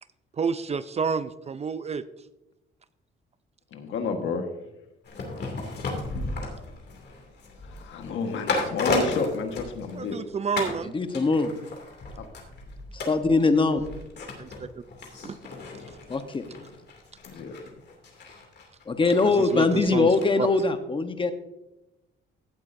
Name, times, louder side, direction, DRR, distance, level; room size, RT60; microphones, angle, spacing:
voice 1, 0.4-2.0 9.9-10.9 14.4-14.7 15.2-15.4 15.9-16.0 19.2-20.5, right 5 dB, 35° right, 0.5 m, -30 dB
voice 2, 3.7-4.5 7.6-10.2 12.2-12.3 17.3-17.7, left 4 dB, 75° left, 1.5 m, -31 dB
sound 1, 5.0-10.2 10.6-10.8 11.1-20.3 20.6-20.7, left 3 dB, 60° left, 2.6 m, -34 dB
voice 3, 10.9-11.5 13.1-13.8 16.1-16.4 18.9-21.3, left 3 dB, 25° left, 1.0 m, -22 dB
15.5 x 8.4 x 2.6 m
cardioid pair, 90°, 20 cm